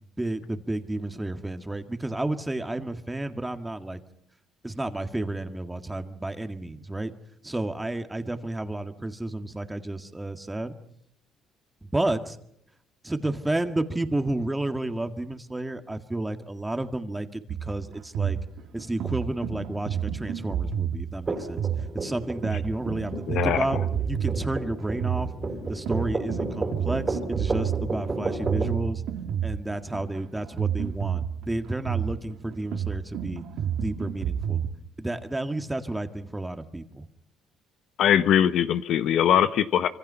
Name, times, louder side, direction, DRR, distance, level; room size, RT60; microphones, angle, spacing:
voice 1, 0.2-4.0 4.6-7.1 7.4-10.8 11.8-12.4 13.0-18.4 18.7-21.6 21.9-23.8 24.1-25.3 25.7-29.0 29.4-33.4 33.8-34.6 35.0-37.1, right 2 dB, 10° right, 7 dB, 2.0 m, -31 dB
sound 1, 17.5-34.7, right 8 dB, 75° right, 2.4 m, -30 dB
sound 2, 21.3-28.8, right 3 dB, 25° right, 3.6 m, -32 dB
voice 2, 23.1-23.8 38.0-39.9, left 10 dB, 70° left, 13 dB, 1.0 m, -22 dB
25.5 x 25.0 x 5.7 m, 0.73 s
cardioid pair, 90°, 0 cm